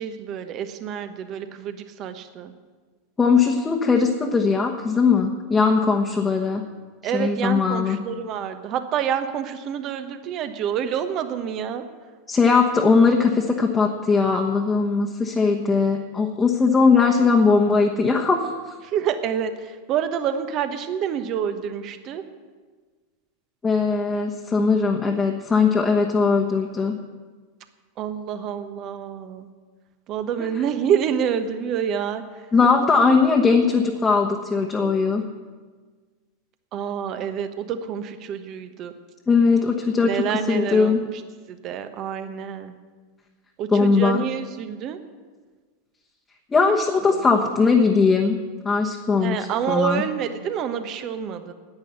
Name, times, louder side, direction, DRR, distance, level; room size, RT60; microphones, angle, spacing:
voice 1, 0.0-2.5 7.0-11.8 18.9-22.2 28.0-29.5 30.1-32.2 36.7-38.9 40.0-40.9 41.5-42.7 43.6-45.0 49.2-51.5, right 8 dB, 40° right, 9 dB, 1.2 m, -27 dB
voice 2, 3.2-6.6 7.1-8.0 12.3-18.7 23.6-26.9 30.4-30.5 32.5-35.2 39.3-41.0 43.7-44.2 46.5-48.4 48.6-50.0, left 4 dB, 20° left, 1 dB, 1.2 m, -19 dB
10.5 x 9.5 x 8.1 m, 1.4 s
figure-of-eight pair, 85°, 0 cm